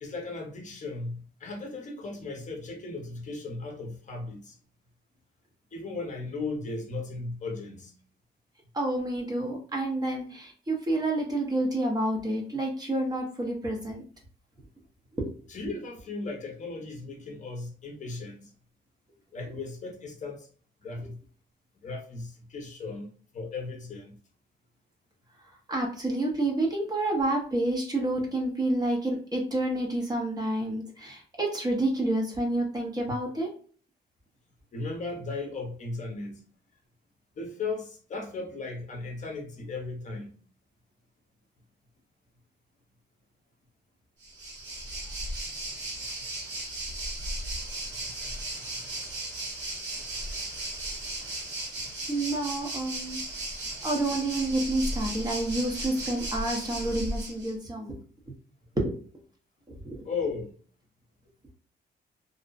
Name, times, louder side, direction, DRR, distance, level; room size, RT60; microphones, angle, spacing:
voice 1, 0.0-4.6 5.7-7.9 15.5-18.5 19.3-20.5 20.8-21.2 21.8-24.2 34.7-36.4 37.4-40.4 48.0-48.1 48.7-48.8 60.0-60.6, left 3 dB, 45° left, 0.6 m, -36 dB
voice 2, 8.7-14.0 15.2-15.3 25.7-33.5 52.1-53.2 53.8-58.0 58.8-59.0 59.8-60.0, right 1 dB, 20° right, 0.7 m, -29 dB
Waves surf, 44.2-57.5, right 1 dB, 90° right, 1.1 m, -36 dB
2.5 x 2.0 x 2.4 m
cardioid pair, 140°, 18 cm